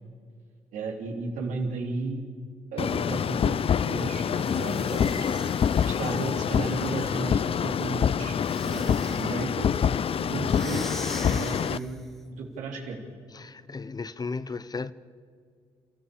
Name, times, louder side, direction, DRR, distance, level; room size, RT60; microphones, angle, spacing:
voice 1, 0.7-2.2 2.7-3.6 3.8-5.3 5.9-8.4 8.6-9.7 10.2-10.9 11.2-13.1, right 3 dB, 80° right, 3.3 m, -34 dB
sound 1, 2.8-11.8, left 7 dB, 45° left, 0.6 m, -26 dB
sound 2, 4.3-7.3 8.4-9.5 10.4-12.1, equal, ahead, 2.4 m, -43 dB
voice 2, 13.3-14.9, left 4 dB, 30° left, 0.9 m, -35 dB
29.5 x 14.0 x 6.9 m
supercardioid pair, 60°, 13 cm